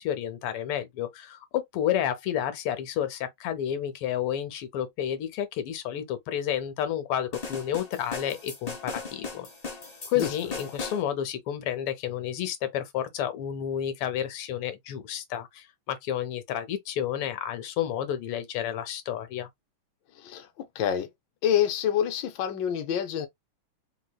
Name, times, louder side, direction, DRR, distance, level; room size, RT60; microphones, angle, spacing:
voice 1, 0.0-9.5 10.1-19.5, left 10 dB, 90° left, 1.7 m, -31 dB
sound 1, 7.3-11.0, left 4 dB, 25° left, 0.9 m, -37 dB
voice 2, 20.1-21.1 21.4-23.3, left 9 dB, 65° left, 1.3 m, -27 dB
3.9 x 2.8 x 2.2 m
omnidirectional pair, 2.4 m